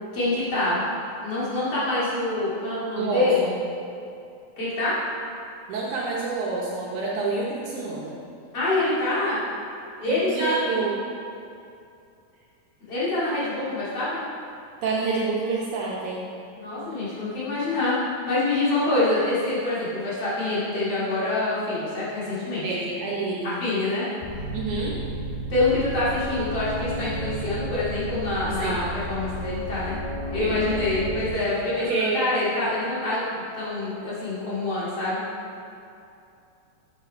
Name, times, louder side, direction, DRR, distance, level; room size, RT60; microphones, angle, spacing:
voice 1, 0.1-0.9 1.2-3.5 4.6-4.9 8.5-9.4 10.0-10.6 12.9-14.2 16.5-18.0 18.3-22.6 23.6-24.1 25.5-30.0 30.3-35.2, left 2 dB, 50° left, -9 dB, 3.0 m, -26 dB
voice 2, 3.0-3.6 5.7-8.2 10.1-10.9 14.8-16.3 22.6-23.6 24.5-25.0 28.6-28.8 30.4-30.6 31.7-32.2, right 4 dB, 70° right, -4 dB, 2.1 m, -28 dB
sound 1, 24.2-31.3, equal, 85° left, 2.8 m, -32 dB
8.1 x 7.1 x 4.5 m, 2.6 s
omnidirectional pair, 4.0 m